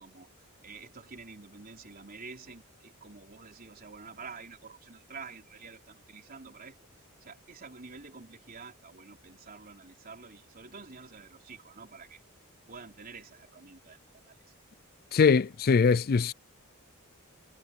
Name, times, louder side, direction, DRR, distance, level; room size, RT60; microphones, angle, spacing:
voice 1, 0.0-6.8 7.2-12.2 12.7-14.0 14.3-14.5, right 4 dB, 45° right, 3.9 m, -48 dB
voice 2, 15.1-16.3, left 5 dB, 45° left, 0.4 m, -22 dB
head